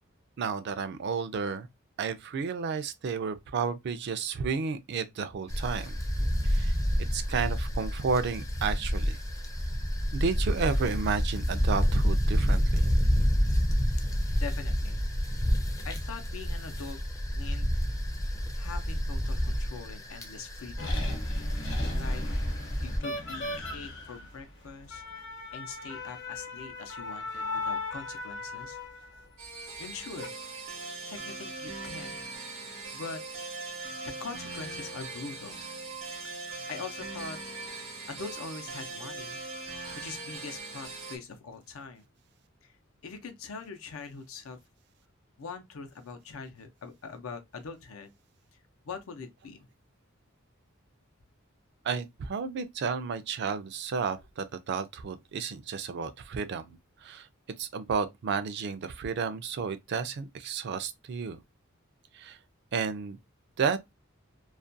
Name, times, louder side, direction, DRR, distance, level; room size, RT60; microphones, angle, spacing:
voice 1, 0.4-1.7 2.0-6.0 6.4-6.7 7.1-9.2 10.1-12.9 51.8-56.7 57.0-57.3 57.6-61.4 62.1-62.4 62.7-63.2 63.6-63.8, right 5 dB, 55° right, 0.3 m, -32 dB
sound 1, 5.5-23.0, equal, 15° left, 0.4 m, -28 dB
voice 2, 14.3-15.0 15.8-17.0 17.3-17.7 18.6-21.0 21.9-22.2 22.8-25.0 25.5-28.8 29.8-30.3 31.1-32.3 32.9-33.2 34.0-35.6 36.7-37.4 38.1-39.4 40.0-42.1 42.6-42.8 43.0-44.6 45.4-48.1 48.5-49.7, left 4 dB, 90° left, 0.6 m, -43 dB
sound 2, 20.8-29.2 30.0-30.3, left 2 dB, 60° left, 0.8 m, -38 dB
sound 3, 29.4-41.2, right 3 dB, 85° right, 0.9 m, -40 dB
2.4 x 2.2 x 2.5 m
head